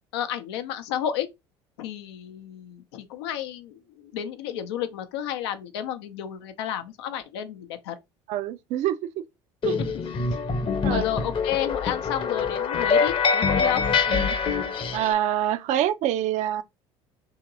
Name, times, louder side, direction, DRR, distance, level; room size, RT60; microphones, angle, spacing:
voice 1, 0.1-1.3 1.8-7.9 9.8-9.9 10.9-13.8, left 10 dB, 85° left, 0.6 m, -31 dB
voice 2, 8.3-9.0 9.6-9.8 10.8-11.0 14.1-14.4 14.9-16.6, right 12 dB, 65° right, 0.5 m, -25 dB
sound 1, 9.6-15.1, left 5 dB, 40° left, 0.8 m, -24 dB
2.9 x 2.9 x 3.8 m
hypercardioid pair, 75°, 13 cm